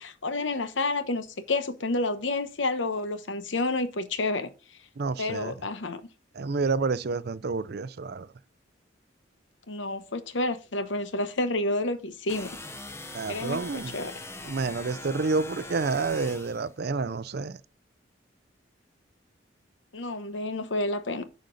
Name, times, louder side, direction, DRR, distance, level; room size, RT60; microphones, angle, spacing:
voice 1, 0.0-4.5 5.2-6.0 9.7-12.5 13.3-14.1 19.9-21.2, left 2 dB, 80° left, 1.0 m, -29 dB
voice 2, 5.0-5.5 6.3-8.3 13.1-13.9 14.4-17.6, right 4 dB, 55° right, 0.5 m, -29 dB
sound 1, 12.3-16.7, left 2 dB, 15° left, 0.7 m, -41 dB
9.1 x 5.2 x 4.0 m
head